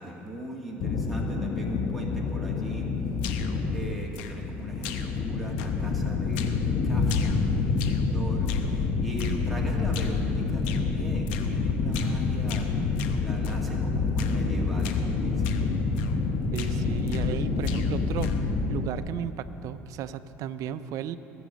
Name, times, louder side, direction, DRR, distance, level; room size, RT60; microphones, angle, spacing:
voice 1, 0.0-2.9 3.7-12.7 13.2-15.5, right 1 dB, ahead, -3 dB, 2.0 m, -40 dB
sound 1, 0.8-18.9, left 4 dB, 45° left, 1.3 m, -27 dB
sound 2, 3.2-3.6 4.1-4.6 4.8-5.3 5.6-6.0 6.3-6.6 7.0-8.1 8.5-8.7 9.2-9.4 9.9-10.2 10.6-10.9 11.3-11.5 11.9-12.2 12.5-13.6 14.2-14.4 14.8-15.1 15.4-15.7 16.0-16.2 16.5-17.4 17.6-18.5, left 9 dB, 80° left, 0.8 m, -41 dB
voice 2, 16.5-18.3 18.7-21.2, right 10 dB, 60° right, 11 dB, 0.5 m, -34 dB
21.0 x 7.1 x 5.2 m, 2.9 s
supercardioid pair, 80°, 6 cm